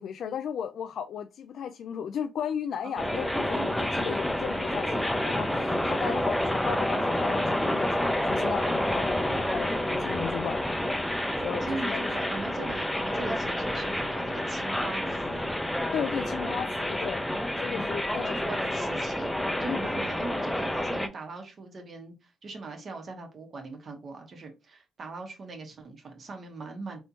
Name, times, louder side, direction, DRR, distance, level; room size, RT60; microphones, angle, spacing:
voice 1, 0.0-10.6 11.2-12.2 15.9-17.2 17.6-18.5 19.7-20.0, left 8 dB, 65° left, 0.3 m, -35 dB
voice 2, 2.8-3.2 6.0-6.4 11.6-15.5 18.1-27.0, right 3 dB, 50° right, 1.3 m, -40 dB
sound 1, 3.0-21.1, left 1 dB, 5° left, 0.6 m, -29 dB
4.0 x 3.4 x 2.9 m
cardioid pair, 90°, 0 cm